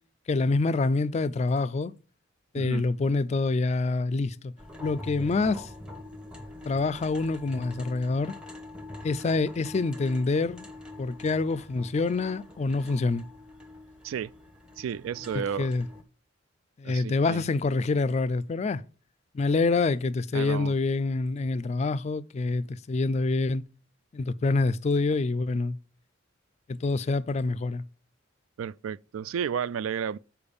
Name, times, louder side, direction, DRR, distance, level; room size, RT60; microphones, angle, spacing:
voice 1, 0.3-1.9 2.5-4.5 4.8-5.7 6.6-8.4 9.0-10.7 11.0-13.2 15.3-15.8 16.8-18.8 19.3-23.6 24.1-25.8 26.7-27.8, left 3 dB, 35° left, 0.3 m, -26 dB
voice 2, 2.6-2.9 14.0-14.3 14.8-15.7 16.8-17.4 20.3-20.8 28.6-30.2, right 7 dB, 90° right, 0.3 m, -32 dB
sound 1, 4.6-16.0, left 2 dB, 5° right, 0.8 m, -44 dB
6.9 x 4.6 x 5.2 m
head